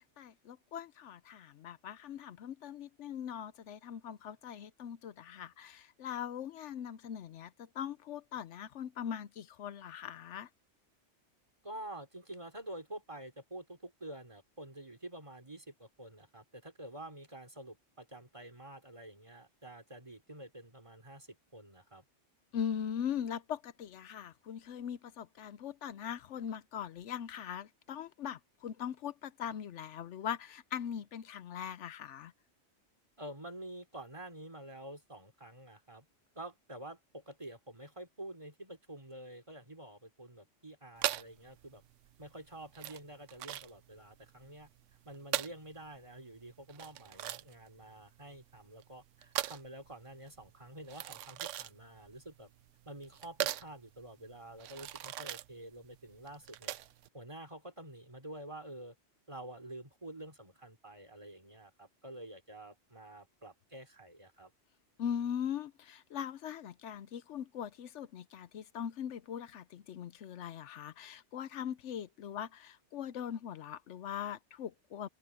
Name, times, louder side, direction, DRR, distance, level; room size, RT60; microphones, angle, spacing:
voice 1, 0.0-10.5 22.5-32.3 65.0-75.1, left 9 dB, 75° left, 1.0 m, -41 dB
voice 2, 11.6-22.0 33.2-36.1 36.4-41.8 42.2-44.7 45.1-52.5 52.9-56.8 57.1-59.0 59.3-64.5, right 1 dB, 25° right, 3.4 m, -48 dB
sound 1, 41.0-57.1, right 13 dB, 85° right, 1.0 m, -40 dB
omnidirectional pair, 1.2 m